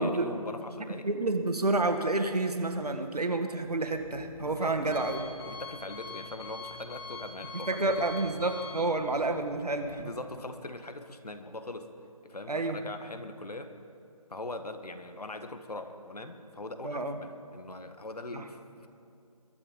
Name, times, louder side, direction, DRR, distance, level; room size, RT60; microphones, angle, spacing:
voice 1, 0.0-1.1 4.4-8.1 10.0-11.9 12.2-13.7 14.3-18.9, left 2 dB, 90° left, 8 dB, 1.6 m, -41 dB
voice 2, 1.0-5.2 7.5-10.1 12.5-12.9 16.8-17.2 18.3-18.5, right 2 dB, 85° right, 7 dB, 1.8 m, -29 dB
Alarm, 3.5-9.9, left 4 dB, 40° left, 5.2 m, -45 dB
23.0 x 12.0 x 5.2 m, 2.6 s
figure-of-eight pair, 155°, 19 cm